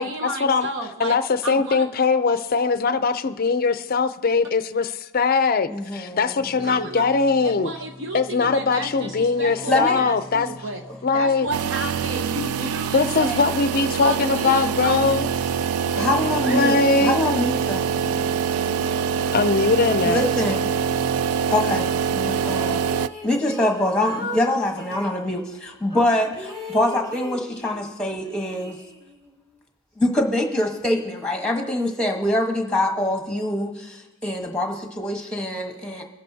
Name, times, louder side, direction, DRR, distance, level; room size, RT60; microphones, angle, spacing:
voice 1, 0.0-1.9 6.6-7.1 7.4-10.8 11.1-13.4 14.0-15.2 16.0-16.1 16.4-16.7, right 1 dB, 60° right, 4 dB, 0.9 m, -32 dB
voice 2, 1.0-7.7 8.1-10.5 11.0-11.5 12.9-15.3 16.5-17.2 19.3-20.2, left 4 dB, 40° left, 12 dB, 0.5 m, -21 dB
voice 3, 5.7-6.3 9.7-10.0 10.9-11.0 16.0-16.8 17.0-17.9 20.0-20.6 21.5-22.8 23.2-28.8 30.0-36.0, left 1 dB, 5° left, 2 dB, 1.2 m, -24 dB
sound 1, 6.3-21.2, equal, 10° right, 1.0 m, -41 dB
sound 2, 11.5-23.1, right 7 dB, 85° right, 0.3 m, -24 dB
sound 3, 22.4-25.2 25.9-27.9 28.2-29.3, left 1 dB, 30° right, 2.4 m, -37 dB
21.5 x 10.0 x 2.8 m, 1.1 s
head